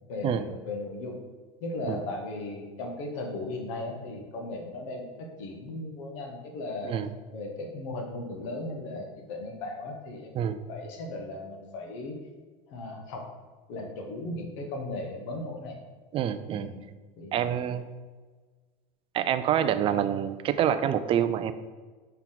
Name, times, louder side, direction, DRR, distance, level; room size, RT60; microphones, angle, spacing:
voice 1, 0.1-1.2 1.6-6.9 7.3-10.3 10.7-12.2 12.7-13.3 13.7-15.8 16.5-16.8 17.2-17.6, left 2 dB, 70° left, 3 dB, 1.3 m, -37 dB
voice 2, 16.1-16.7 17.3-17.9 19.1-21.5, right 9 dB, 35° right, 11 dB, 0.4 m, -27 dB
5.8 x 4.6 x 3.9 m, 1.4 s
supercardioid pair, 125°, 17 cm